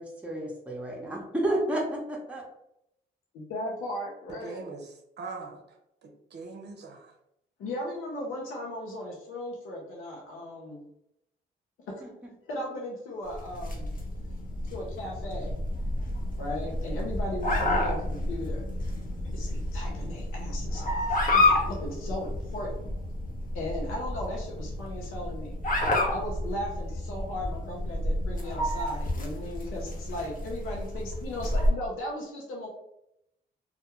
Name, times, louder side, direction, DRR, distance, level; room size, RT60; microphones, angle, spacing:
voice 1, 0.0-2.4 12.0-12.1, right 1 dB, 5° right, -2 dB, 0.8 m, -31 dB
voice 2, 3.3-4.6 7.6-10.8 11.9-12.1 12.5-13.9 14.7-15.5 16.3-18.7 19.2-22.9 23.5-25.6 26.1-32.7, left 1 dB, 80° left, -2 dB, 0.6 m, -37 dB
voice 3, 4.3-7.1, right 4 dB, 55° right, 3 dB, 0.6 m, -42 dB
sound 1, 13.3-31.7, left 1 dB, 40° left, 0.8 m, -30 dB
2.2 x 2.2 x 2.9 m, 0.80 s
supercardioid pair, 50°, 21 cm